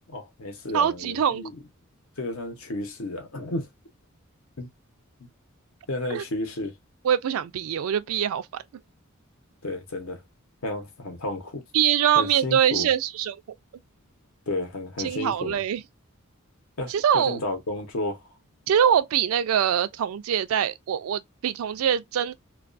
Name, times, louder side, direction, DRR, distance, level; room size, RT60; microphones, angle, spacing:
voice 1, 0.1-1.6 2.2-3.7 4.6-4.7 5.2-5.3 5.9-6.7 9.6-10.2 10.6-11.6 12.1-12.9 14.5-15.6 16.8-18.3, left 2 dB, 75° left, 0.8 m, -32 dB
voice 2, 0.7-1.4 6.1-6.2 7.0-8.6 11.7-13.4 15.0-15.8 16.9-17.4 18.7-22.3, right 9 dB, 75° right, 0.3 m, -23 dB
2.3 x 2.2 x 2.4 m
head